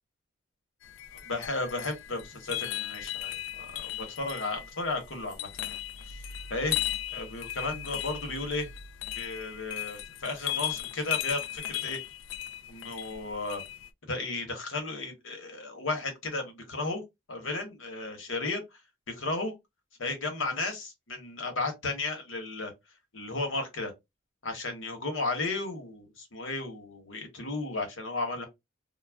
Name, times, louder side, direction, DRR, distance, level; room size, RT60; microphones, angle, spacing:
sound 1, 0.8-13.9, left 12 dB, 70° left, 0.3 m, -37 dB
voice 1, 1.3-5.8 6.1-6.2 6.5-6.8 7.1-8.7 9.1-12.0 12.7-13.6 14.1-17.0 17.3-18.6 19.1-19.5 20.0-22.7 23.1-23.9 24.4-28.5, left 3 dB, 85° left, 1.0 m, -34 dB
2.3 x 2.0 x 3.3 m
head